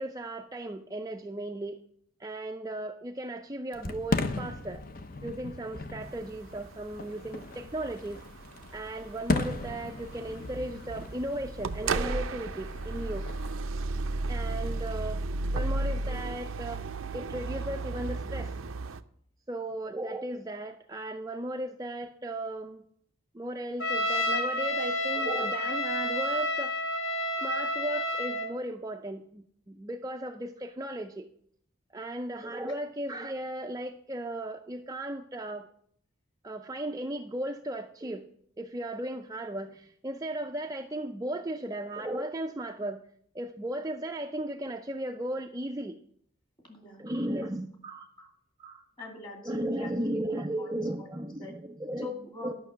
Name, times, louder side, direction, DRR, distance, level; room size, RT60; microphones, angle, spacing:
voice 1, 0.0-1.8 2.2-4.8 5.2-8.2 8.7-13.3 14.3-15.2 15.5-16.8 17.1-18.5 19.5-22.8 23.3-26.9 27.4-31.3 31.9-35.7 36.4-38.3 38.6-43.0 43.3-46.0 47.0-48.3 48.6-48.8 49.4-52.1 52.4-52.5, right 1 dB, 15° right, 4 dB, 0.4 m, -36 dB
Fireworks, 3.7-13.6, left 3 dB, 45° left, 0.7 m, -37 dB
sound 1, 6.0-19.0, right 3 dB, 90° right, 0.6 m, -34 dB
Trumpet, 23.8-28.5, left 1 dB, 90° left, 1.3 m, -30 dB
voice 2, 46.7-47.0 48.2-48.3 49.0-49.9 50.3-51.6 52.0-52.5, left 2 dB, 20° left, 2 dB, 2.2 m, -43 dB
11.5 x 6.0 x 7.3 m, 0.65 s
head